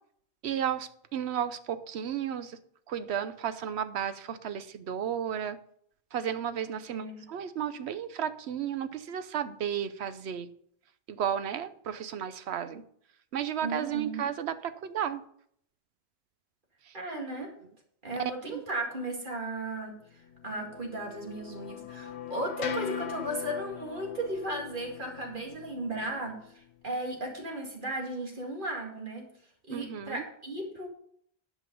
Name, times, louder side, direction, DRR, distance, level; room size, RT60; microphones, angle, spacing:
voice 1, 0.4-2.6 2.9-5.6 6.1-10.5 11.1-12.8 13.3-15.2 16.9-17.0 18.5-18.6 29.7-30.2, right 9 dB, 90° right, 12 dB, 1.0 m, -33 dB
voice 2, 6.9-7.3 13.6-14.2 16.9-17.5 18.0-29.3 29.7-30.9, right 1 dB, 50° right, 1 dB, 2.3 m, -36 dB
sound 1, 20.1-26.5, left 8 dB, 80° left, 1.1 m, -41 dB
11.0 x 5.4 x 5.1 m, 0.66 s
omnidirectional pair, 1.1 m